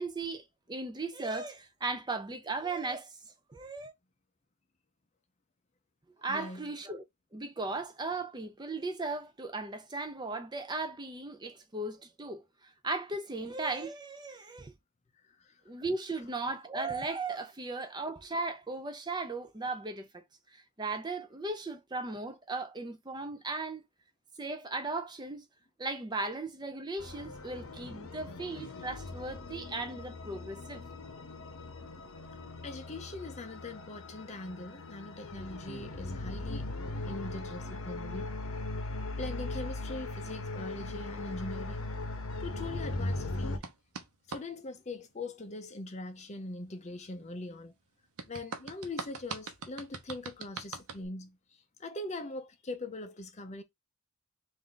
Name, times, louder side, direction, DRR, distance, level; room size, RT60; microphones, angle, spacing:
voice 1, 0.0-3.1 3.5-3.9 6.2-7.0 7.3-14.7 15.7-20.1 20.5-23.8 24.4-25.4 25.8-30.8, right 3 dB, 20° right, 0.5 m, -37 dB
voice 2, 6.3-6.7 15.3-15.8 32.3-32.4 32.6-36.7 37.1-38.4 39.2-41.9 42.4-43.6 44.3-47.7 48.3-53.6, left 2 dB, 30° left, 0.5 m, -42 dB
sound 1, 27.0-43.6, left 2 dB, 70° left, 0.8 m, -39 dB
sound 2, 43.6-44.4 48.2-51.1, right 4 dB, 80° right, 0.8 m, -42 dB
3.6 x 2.6 x 3.7 m
head